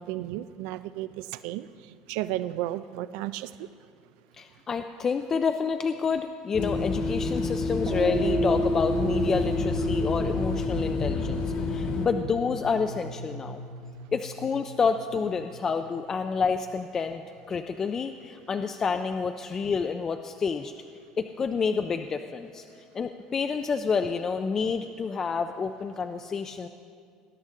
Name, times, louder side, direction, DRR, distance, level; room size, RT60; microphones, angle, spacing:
voice 1, 0.0-1.7 2.1-3.7, right 14 dB, 75° right, 14 dB, 0.3 m, -33 dB
voice 2, 4.4-13.6 14.1-17.2 17.5-20.7 21.2-26.7, left 5 dB, 20° left, 7 dB, 0.3 m, -29 dB
sound 1, 6.5-12.1, left 3 dB, 45° left, 1.3 m, -29 dB
sound 2, 7.8-16.3, right 2 dB, 35° right, 1.0 m, -33 dB
19.5 x 11.0 x 3.7 m, 2.3 s
cardioid pair, 165°, 2 cm